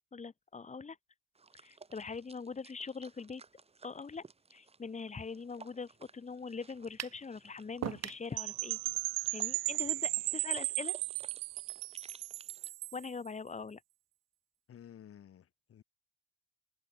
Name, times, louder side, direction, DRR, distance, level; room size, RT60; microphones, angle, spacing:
voice 1, 0.1-1.0 1.6-3.4 3.8-4.2 4.5-8.8 9.3-10.9 12.9-13.8, left 5 dB, 20° left, 6.5 m, -42 dB
sound 1, 1.3-12.7, right 4 dB, 15° right, 6.3 m, -58 dB
sound 2, 7.0-7.2 7.8-8.3, right 11 dB, 45° right, 4.1 m, -38 dB
Percussion / Wind chime, 8.4-13.1, right 37 dB, 90° right, 0.6 m, -35 dB
voice 2, 14.7-15.8, left 9 dB, 40° left, 5.4 m, -53 dB
cardioid pair, 140°, 36 cm